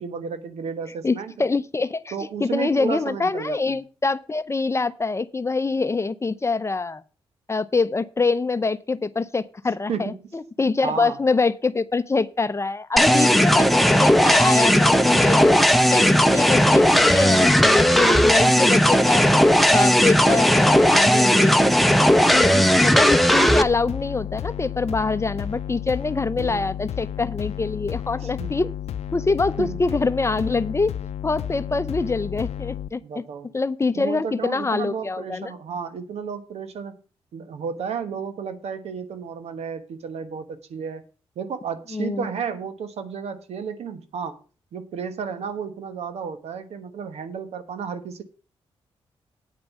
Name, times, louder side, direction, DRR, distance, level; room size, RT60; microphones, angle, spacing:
voice 1, 0.0-1.3 2.1-3.8 9.9-10.3 10.8-11.2 26.4-26.7 28.2-28.5 29.6-29.8 33.0-33.5 33.9-37.0 37.3-41.0 41.4-44.4 44.7-48.2, right 6 dB, 75° right, 11 dB, 1.2 m, -32 dB
voice 2, 1.0-2.1 2.4-7.0 7.5-15.6 15.9-19.3 19.7-21.8 22.3-28.7 29.1-30.9 31.2-33.2 33.5-35.5 41.9-42.3, left 3 dB, 25° left, 14 dB, 0.6 m, -25 dB
sound 1, 13.0-23.6, equal, ahead, 0.9 m, -16 dB
sound 2, 23.6-32.9, left 10 dB, 75° left, 0.6 m, -32 dB
9.0 x 5.3 x 7.1 m, 0.36 s
cardioid pair, 65°, 11 cm